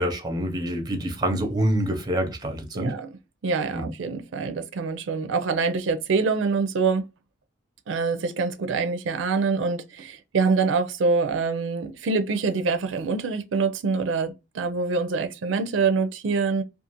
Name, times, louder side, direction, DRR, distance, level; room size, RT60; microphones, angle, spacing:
voice 1, 0.0-3.0 3.7-3.9, right 1 dB, 20° right, 0.6 m, -26 dB
voice 2, 2.7-3.1 3.4-7.0 7.9-16.6, right 4 dB, 90° right, 0.4 m, -25 dB
2.4 x 2.4 x 2.8 m
head